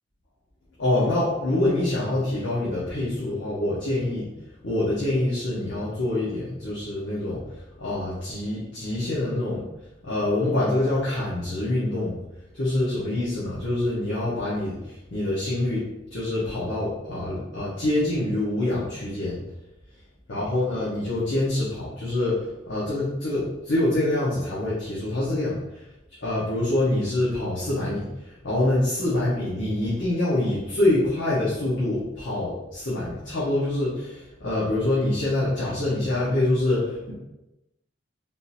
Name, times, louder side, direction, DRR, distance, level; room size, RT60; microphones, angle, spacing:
voice 1, 0.8-4.3 4.6-9.6 10.0-12.2 12.5-19.4 20.3-25.9 26.2-37.1, left 1 dB, 90° left, -8 dB, 0.9 m, -25 dB
3.5 x 2.8 x 2.6 m, 0.96 s
head